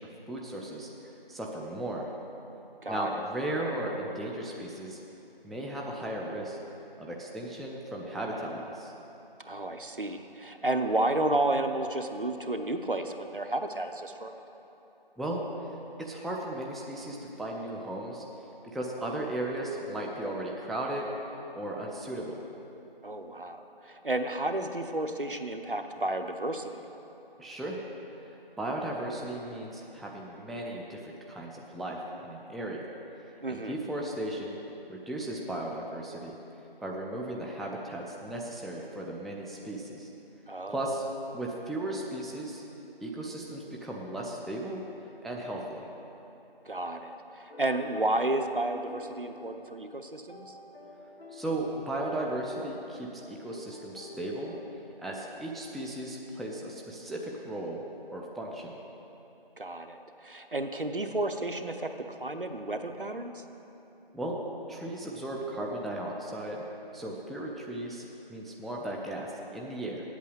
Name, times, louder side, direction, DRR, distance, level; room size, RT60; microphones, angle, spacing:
voice 1, 0.0-2.1 2.9-5.0 5.4-6.6 7.0-8.9 15.2-18.2 18.7-21.1 21.5-22.4 27.4-27.8 28.6-32.8 33.5-34.6 34.9-36.3 36.8-40.1 40.7-41.0 41.3-42.6 43.0-44.8 45.2-45.8 51.3-54.5 55.0-57.8 58.1-58.8 64.1-66.6 66.9-70.0, right 1 dB, ahead, -2 dB, 0.5 m, -36 dB
voice 2, 2.8-3.2 9.4-14.3 23.0-26.8 33.4-33.8 40.5-40.8 46.6-50.6 59.6-63.4, right 2 dB, 60° right, 6 dB, 0.7 m, -32 dB
sound 1, 47.5-54.7, left 1 dB, 80° left, 1.0 m, -49 dB
8.2 x 7.4 x 7.6 m, 3.0 s
figure-of-eight pair, 175°, 30 cm